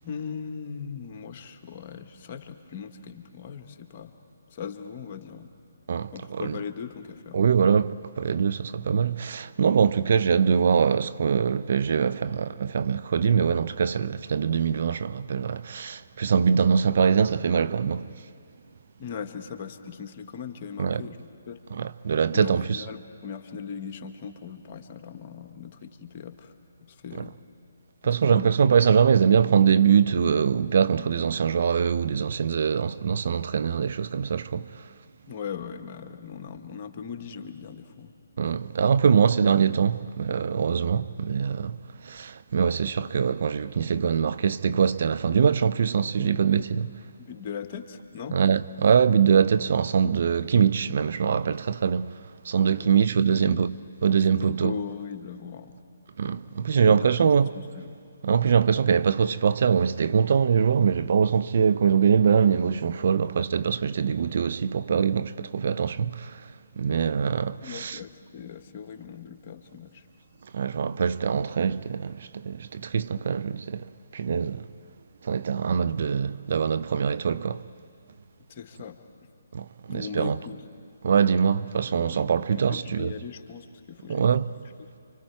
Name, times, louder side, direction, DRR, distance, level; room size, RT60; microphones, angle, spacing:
voice 1, 0.0-4.1 4.5-5.5 6.1-7.4 19.0-21.6 22.3-26.5 26.9-27.4 28.0-29.0 35.3-38.1 42.1-42.3 47.2-48.6 52.7-53.6 54.2-55.8 56.4-56.6 56.9-58.0 67.6-70.1 78.5-79.0 79.9-80.6 82.0-84.5 84.8-84.9, left 6 dB, 35° left, 1.7 m, -39 dB
voice 2, 5.9-6.5 7.3-18.1 20.8-21.0 21.8-22.6 28.0-34.7 38.4-41.8 42.0-46.9 48.3-52.1 52.4-53.7 54.0-54.7 56.2-57.5 58.2-66.4 66.8-68.0 70.5-74.7 75.2-77.7 79.5-80.3 81.0-83.1 84.1-84.5, right 7 dB, 50° right, 0.6 m, -23 dB
29.5 x 25.5 x 4.7 m
figure-of-eight pair, 140°, 0 cm